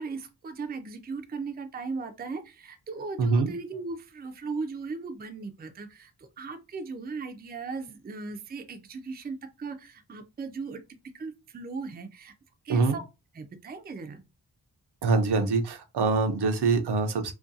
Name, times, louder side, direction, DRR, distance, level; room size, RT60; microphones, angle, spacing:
voice 1, 0.0-6.1 6.4-10.8 11.1-12.3 12.6-13.0 13.3-14.2, right 4 dB, 25° right, 0.3 m, -37 dB
voice 2, 3.2-3.5 12.7-13.0 15.0-17.3, right 3 dB, 75° right, 0.6 m, -24 dB
2.4 x 2.2 x 2.6 m
wide cardioid pair, 105°, 40 cm